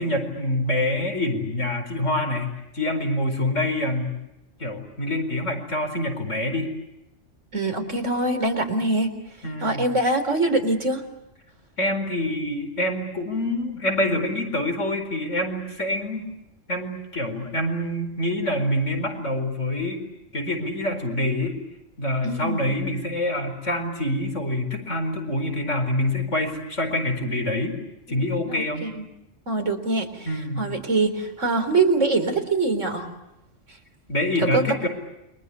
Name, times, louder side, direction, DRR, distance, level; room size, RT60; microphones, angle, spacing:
voice 1, 0.0-4.1 4.6-6.7 9.4-9.9 11.8-16.3 16.7-20.0 20.3-21.5 22.0-27.8 28.1-28.8 30.2-30.7 34.1-34.9, left 1 dB, 85° left, 6 dB, 5.0 m, -26 dB
voice 2, 7.5-9.1 9.6-11.0 22.2-22.7 28.1-29.0 29.5-30.3 30.6-33.1 34.4-34.6, right 2 dB, 85° right, 6 dB, 4.3 m, -24 dB
29.0 x 24.0 x 8.5 m, 0.91 s
omnidirectional pair, 1.2 m